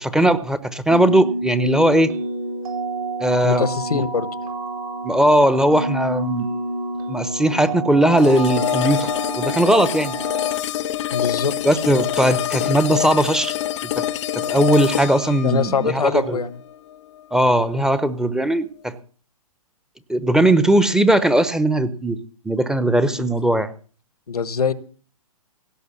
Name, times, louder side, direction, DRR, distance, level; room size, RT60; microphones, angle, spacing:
voice 1, 0.0-2.1 3.2-3.7 3.9-4.0 5.0-6.5 7.1-10.2 11.6-13.6 14.0-14.1 14.3-16.4 17.3-18.9 20.1-22.2 22.4-23.7, right 1 dB, 5° right, 13 dB, 0.8 m, -18 dB
sound 1, 0.9-10.5, right 2 dB, 75° right, 4.4 m, -28 dB
voice 2, 3.4-4.3 11.1-11.5 15.4-16.5 23.2-23.3 24.3-24.7, left 5 dB, 90° left, 16 dB, 1.3 m, -23 dB
sound 2, 8.2-17.2, left 12 dB, 50° left, 0.7 m, -26 dB
17.0 x 6.8 x 8.2 m, 0.42 s
hypercardioid pair, 135°, 19 cm